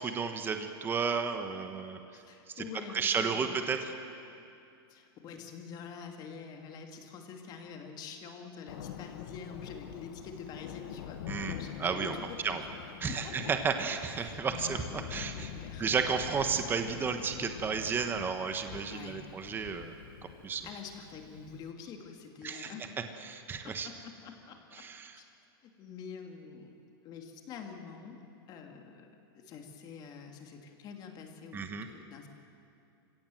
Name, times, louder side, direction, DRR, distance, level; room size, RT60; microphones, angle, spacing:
voice 1, 0.0-2.0 2.5-2.6 2.9-3.8 11.3-12.1 12.4-12.6 13.0-15.5 15.8-20.0 20.4-20.6 22.4-22.7 23.2-23.9 24.8-25.1 31.5-31.9, right 5 dB, 15° right, 7 dB, 1.2 m, -32 dB
voice 2, 2.1-3.5 4.9-12.7 13.1-13.5 14.2-15.9 18.9-19.3 20.6-22.9 23.6-24.9 25.1-25.3 25.6-26.8 27.0-32.3, left 6 dB, 30° left, 4 dB, 2.7 m, -46 dB
Thunder, 8.7-21.7, left 9 dB, 65° left, 1.3 m, -45 dB
27.0 x 17.0 x 7.9 m, 2.6 s
supercardioid pair, 145°, 13 cm